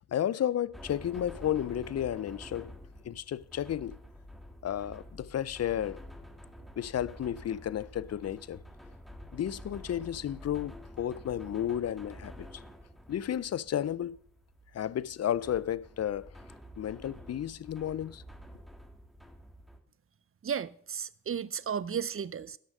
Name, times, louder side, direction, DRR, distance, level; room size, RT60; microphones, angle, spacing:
voice 1, 0.1-2.7 3.0-4.0 4.6-6.0 6.8-8.6 9.3-12.3 13.1-14.2 14.7-16.3 16.8-18.2, left 10 dB, 55° left, 0.5 m, -32 dB
sound 1, 0.7-19.8, equal, ahead, 1.8 m, -49 dB
voice 2, 20.4-22.6, right 7 dB, 45° right, 0.5 m, -34 dB
11.0 x 6.3 x 6.4 m
cardioid pair, 45°, 31 cm